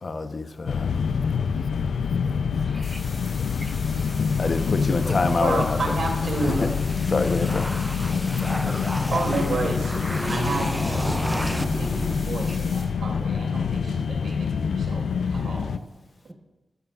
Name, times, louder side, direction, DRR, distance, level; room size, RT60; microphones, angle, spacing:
voice 1, 0.0-0.9 4.4-6.0 6.4-6.7 7.1-7.7, left 3 dB, 55° left, 8 dB, 0.9 m, -26 dB
sound 1, 0.7-15.8, left 6 dB, 90° left, 0.4 m, -26 dB
voice 2, 2.5-3.0 3.6-4.7 5.1-5.4 12.5-12.6, right 1 dB, 25° right, 5 dB, 1.1 m, -43 dB
sound 2, 2.8-12.8, left 3 dB, 70° left, 4.3 m, -43 dB
sound 3, 3.6-12.9, equal, 5° right, 0.4 m, -33 dB
voice 3, 5.4-6.7 8.9-15.0 15.3-15.7, right 2 dB, 85° right, 1 dB, 2.7 m, -30 dB
15.0 x 13.5 x 2.5 m, 1.1 s
cardioid pair, 50°, 0 cm